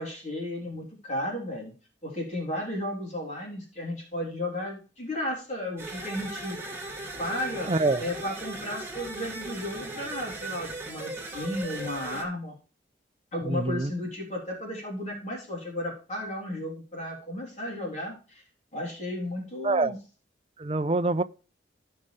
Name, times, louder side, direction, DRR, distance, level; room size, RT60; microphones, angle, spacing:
voice 1, 0.0-1.7 2.0-6.6 7.2-7.7 8.0-12.6 13.3-18.4 18.7-20.0, left 1 dB, 40° left, 3.5 m, -34 dB
sound 1, 5.8-12.2, right 2 dB, 15° right, 2.0 m, -38 dB
voice 2, 7.7-8.0 13.5-13.9 19.6-19.9 20.6-21.2, right 2 dB, 30° right, 0.5 m, -25 dB
16.0 x 5.5 x 3.3 m
head